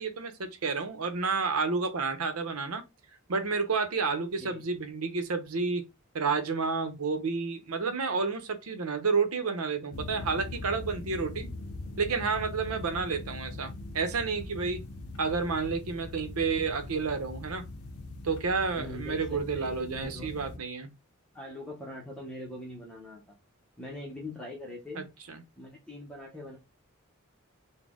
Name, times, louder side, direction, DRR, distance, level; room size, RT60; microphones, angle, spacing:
voice 1, 0.0-2.8 3.3-5.8 6.1-11.5 12.0-14.8 15.2-17.7 18.2-20.9 24.9-25.4, right 4 dB, 90° right, 0.8 m, -30 dB
sound 1, 9.9-20.6, left 2 dB, 75° left, 0.6 m, -41 dB
voice 2, 18.8-20.3 21.3-23.3 23.8-25.0 25.6-26.6, left 1 dB, 5° left, 0.8 m, -42 dB
4.1 x 2.1 x 3.6 m
head